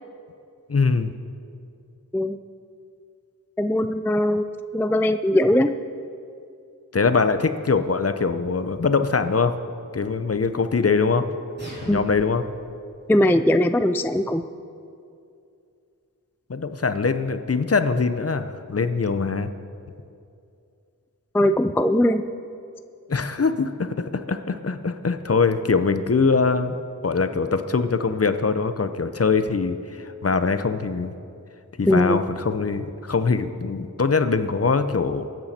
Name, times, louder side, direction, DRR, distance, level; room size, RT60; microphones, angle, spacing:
voice 1, 0.7-1.1 6.9-9.5 9.9-11.3 11.8-12.4 16.5-19.5 23.1-26.8 27.0-31.1 31.8-35.2, left 4 dB, 45° left, 10 dB, 0.7 m, -22 dB
voice 2, 3.6-4.5 4.7-5.8 11.9-12.0 13.1-14.4 21.3-22.2 31.9-32.2, left 1 dB, 5° left, 10 dB, 0.4 m, -20 dB
sound 1, 11.6-12.6, equal, 30° right, 3.7 m, -40 dB
23.5 x 9.0 x 4.3 m, 2.5 s
wide cardioid pair, 70°, 35 cm